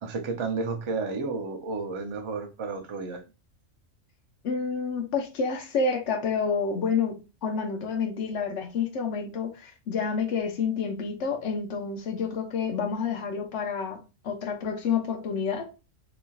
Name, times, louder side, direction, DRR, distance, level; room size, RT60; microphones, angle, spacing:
voice 1, 0.0-3.2, right 4 dB, 40° right, 0.4 m, -32 dB
voice 2, 4.4-7.2 7.4-15.7, left 5 dB, 65° left, 1.1 m, -29 dB
4.1 x 3.0 x 2.3 m
omnidirectional pair, 1.3 m